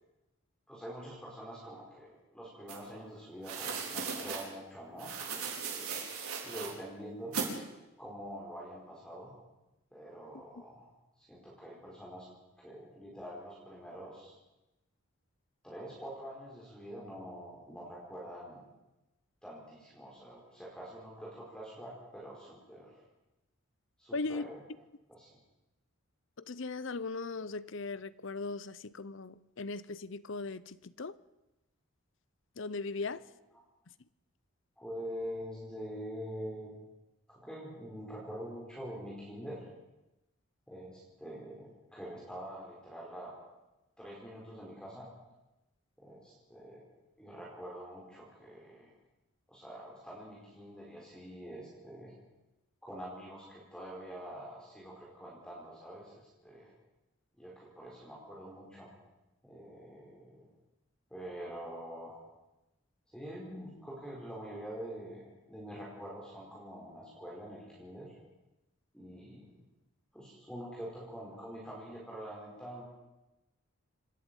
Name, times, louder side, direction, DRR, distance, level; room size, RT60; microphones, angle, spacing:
voice 1, 0.7-6.0 6.4-7.4 8.0-9.3 9.9-10.9 11.3-12.3 12.6-14.3 15.6-18.7 19.4-22.9 24.0-24.6 25.1-25.3 34.8-36.8 37.3-39.6 40.7-43.3 44.0-45.1 46.0-46.8 47.2-48.9 49.5-52.1 52.8-56.1 56.4-56.7 57.4-58.9 59.4-60.4 61.1-62.2 63.1-68.1 68.9-69.5 70.1-72.8, equal, 5° left, 4.7 m, -45 dB
sound 1, 2.7-2.8 3.4-4.4 5.0-6.7 7.3-7.5, right 5 dB, 85° right, 4.6 m, -37 dB
voice 2, 24.1-24.5 26.4-31.2 32.6-33.2, left 3 dB, 55° left, 0.7 m, -38 dB
27.0 x 11.0 x 9.1 m
head